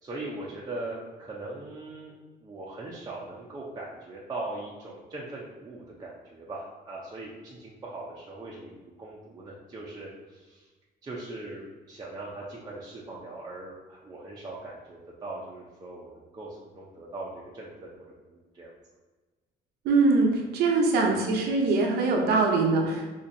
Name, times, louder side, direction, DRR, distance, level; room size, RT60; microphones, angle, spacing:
voice 1, 0.0-2.1 2.4-10.7 11.0-17.3 17.5-18.7 21.1-21.3, right 2 dB, 25° right, -5 dB, 0.6 m, -40 dB
voice 2, 19.8-23.1, right 3 dB, 75° right, 1 dB, 0.7 m, -23 dB
4.2 x 2.8 x 2.6 m, 1.2 s
cardioid pair, 110°, 17 cm